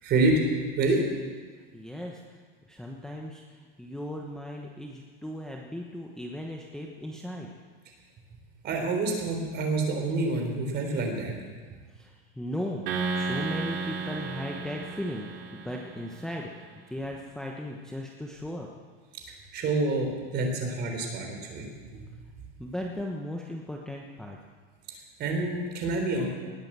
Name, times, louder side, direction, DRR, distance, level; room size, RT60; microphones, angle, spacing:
voice 1, 0.0-0.4 0.8-1.0 8.6-11.3 19.5-21.7 21.9-22.0 25.2-26.3, right 2 dB, 35° right, 2 dB, 3.8 m, -27 dB
voice 2, 1.7-2.4 2.7-7.5 11.9-12.8 13.1-18.7 22.6-24.4, left 1 dB, ahead, -1 dB, 1.1 m, -37 dB
sound 1, 12.9-16.3, right 4 dB, 85° right, 2.8 m, -33 dB
19.0 x 9.0 x 7.5 m, 1.5 s
supercardioid pair, 140°, 29 cm